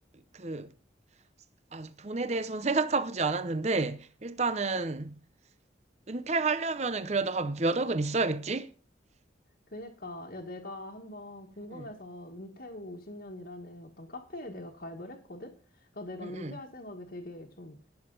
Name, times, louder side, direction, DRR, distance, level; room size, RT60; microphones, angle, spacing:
voice 1, 0.4-0.7 1.7-5.2 6.1-8.7 11.7-11.9 16.2-16.6, right 3 dB, 35° right, 0.7 m, -30 dB
voice 2, 9.7-17.8, left 1 dB, 55° left, 1.6 m, -43 dB
17.5 x 6.7 x 4.0 m
head